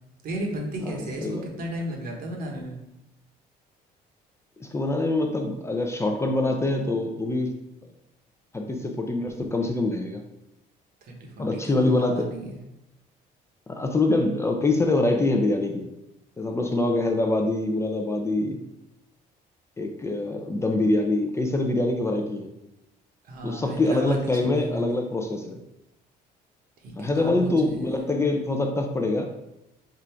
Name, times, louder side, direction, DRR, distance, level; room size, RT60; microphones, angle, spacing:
voice 1, 0.2-2.8 11.0-12.6 23.2-25.0 26.8-28.1, right 1 dB, 60° right, 1 dB, 1.0 m, -34 dB
voice 2, 4.6-7.5 8.5-10.2 11.4-12.3 13.7-15.9 16.4-18.6 19.8-22.5 23.4-25.6 27.0-29.3, left 2 dB, 15° left, 3 dB, 0.4 m, -24 dB
3.7 x 2.4 x 4.3 m, 0.89 s
cardioid pair, 110°, 17 cm